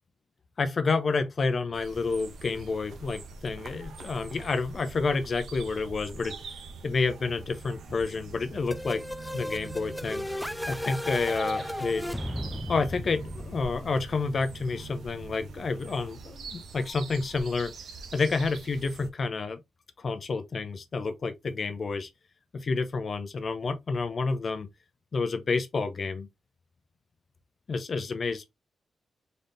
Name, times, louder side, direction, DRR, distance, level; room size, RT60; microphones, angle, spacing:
voice 1, 0.6-6.4 6.8-9.0 9.3-10.3 10.7-12.1 12.7-17.7 18.1-19.6 20.0-22.1 22.5-24.7 25.1-26.3 27.7-28.5, left 4 dB, 45° left, 0.6 m, -29 dB
sound 1, 1.7-19.1, right 4 dB, 75° right, 0.8 m, -44 dB
sound 2, 8.7-14.4, left 1 dB, 5° left, 0.3 m, -35 dB
3.9 x 3.5 x 2.6 m
cardioid pair, 115°, 0 cm